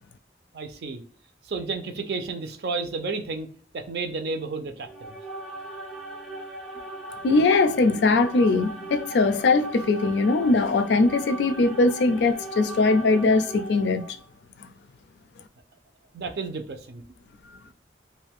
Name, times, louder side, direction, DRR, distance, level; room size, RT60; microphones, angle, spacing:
voice 1, 0.5-1.0 1.5-3.5 3.7-5.2 16.1-17.0, right 4 dB, 60° right, 0.5 m, -32 dB
sound 1, 4.8-14.3, right 2 dB, 5° left, 0.5 m, -38 dB
voice 2, 7.2-14.1, left 3 dB, 80° left, 0.4 m, -21 dB
2.5 x 2.2 x 3.4 m
head